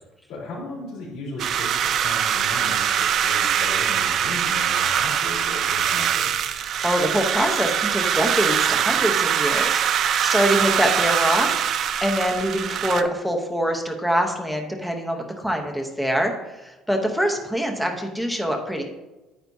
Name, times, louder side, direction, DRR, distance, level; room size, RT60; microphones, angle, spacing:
voice 1, 0.3-6.3, left 2 dB, 75° left, -7 dB, 3.4 m, -36 dB
sound 1, 1.4-13.0, right 9 dB, 45° right, 0.5 m, -23 dB
voice 2, 6.8-11.7 12.0-18.9, equal, ahead, 2 dB, 0.9 m, -24 dB
9.3 x 9.2 x 2.8 m, 1.1 s
cardioid pair, 165°, 0 cm